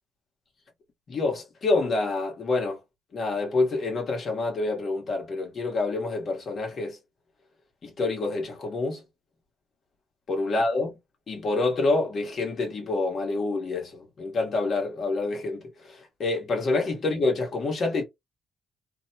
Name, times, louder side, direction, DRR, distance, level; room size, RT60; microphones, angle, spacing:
voice 1, 1.1-2.8 3.1-7.0 7.8-9.0 10.3-10.9 11.3-18.0, left 3 dB, 50° left, 1.2 m, -27 dB
2.6 x 2.2 x 2.7 m
cardioid pair, 90°, 0 cm